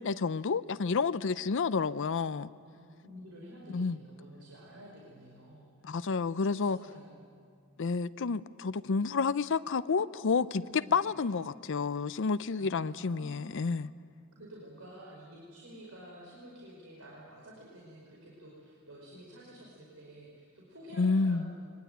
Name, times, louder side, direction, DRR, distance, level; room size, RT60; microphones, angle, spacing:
voice 1, 0.0-2.5 3.7-4.0 5.8-6.8 7.8-10.6 10.9-13.9 21.0-21.5, left 4 dB, 60° left, 14 dB, 0.5 m, -30 dB
voice 2, 2.6-6.1 6.3-7.2 10.6-11.0 12.6-13.6 14.4-21.7, equal, 75° right, -4 dB, 5.0 m, -51 dB
23.0 x 20.0 x 9.1 m, 2.3 s
head